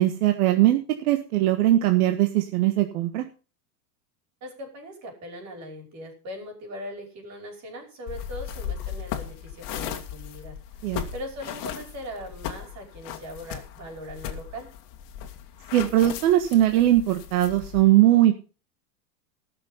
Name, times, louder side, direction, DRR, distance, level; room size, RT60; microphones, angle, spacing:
voice 1, 0.0-3.2 10.8-11.0 15.7-18.4, right 14 dB, 65° right, 6 dB, 1.5 m, -20 dB
voice 2, 4.4-10.6 11.1-14.7, equal, 35° right, 4 dB, 5.4 m, -40 dB
sound 1, 8.1-17.8, left 9 dB, 45° left, 2.2 m, -37 dB
18.0 x 6.7 x 5.5 m, 0.35 s
supercardioid pair, 140°, 47 cm